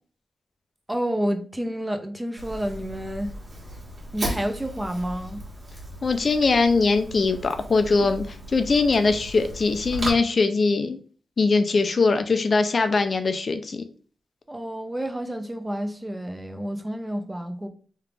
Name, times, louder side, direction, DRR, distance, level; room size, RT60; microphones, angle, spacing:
voice 1, 0.9-3.3 4.1-5.4 14.5-17.7, equal, 10° right, 0.4 m, -29 dB
Fire, 2.4-10.1, right 1 dB, 45° right, 1.4 m, -36 dB
voice 2, 6.0-11.0 11.4-13.8, left 4 dB, 45° left, 0.4 m, -21 dB
3.2 x 2.4 x 3.4 m
wide cardioid pair, 110°, 0 cm